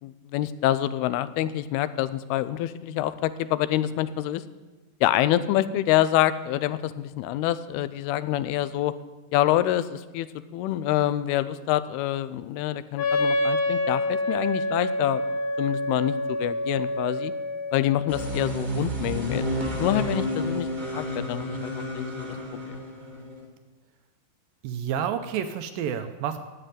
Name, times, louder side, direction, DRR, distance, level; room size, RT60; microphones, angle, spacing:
voice 1, 0.0-4.4 5.0-8.9 9.3-10.3 10.5-15.2 15.6-17.3 17.7-19.5 19.8-20.7 20.9-22.3 22.7-22.8, left 13 dB, 85° left, 14 dB, 2.6 m, -26 dB
Wind instrument woodwind instrument, 13.0-18.6, left 2 dB, 65° left, 1.6 m, -27 dB
robot ghost, 18.1-23.4, equal, 25° right, 1.0 m, -31 dB
voice 2, 24.6-26.4, right 8 dB, 80° right, 9 dB, 2.2 m, -29 dB
9.9 x 8.9 x 9.1 m, 1.2 s
omnidirectional pair, 4.5 m